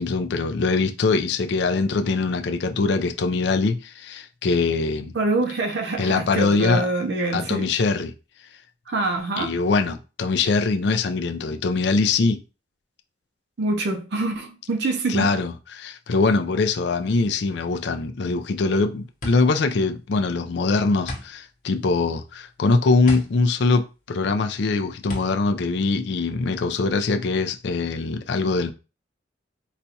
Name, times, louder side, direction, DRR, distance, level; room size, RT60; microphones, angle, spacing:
voice 1, 0.0-5.1 6.0-6.9 7.3-8.1 9.4-12.4 15.1-28.7, left 3 dB, 65° left, 0.4 m, -22 dB
voice 2, 5.1-7.7 8.9-9.5 13.6-15.3, right 2 dB, 65° right, 0.6 m, -25 dB
sound 1, 18.4-26.7, left 1 dB, 45° left, 0.9 m, -38 dB
4.1 x 2.2 x 2.7 m
head